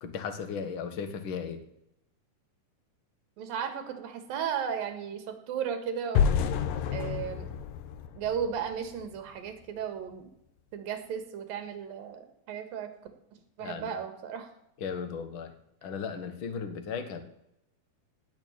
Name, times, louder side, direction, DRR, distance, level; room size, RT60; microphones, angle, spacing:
voice 1, 0.0-1.6 13.6-13.9 14.8-15.5 15.8-17.2, left 6 dB, 50° left, 8 dB, 1.6 m, -36 dB
voice 2, 3.4-6.4 6.9-7.5 8.2-10.3 10.7-12.9 13.6-14.5, right 8 dB, 75° right, 8 dB, 3.4 m, -35 dB
sound 1, 6.1-9.1, left 7 dB, 70° left, 2.5 m, -29 dB
18.0 x 6.6 x 8.7 m, 0.81 s
omnidirectional pair, 4.2 m